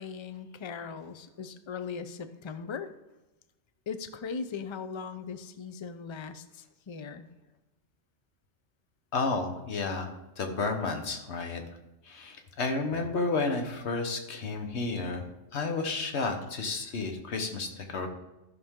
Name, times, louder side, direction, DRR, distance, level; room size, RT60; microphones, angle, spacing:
voice 1, 0.0-2.9 3.9-7.3, left 5 dB, 40° left, 10 dB, 0.4 m, -39 dB
voice 2, 9.1-11.6 12.1-15.2 15.5-18.1, left 3 dB, 65° left, 5 dB, 1.4 m, -31 dB
13.5 x 6.3 x 3.7 m, 0.97 s
omnidirectional pair, 1.3 m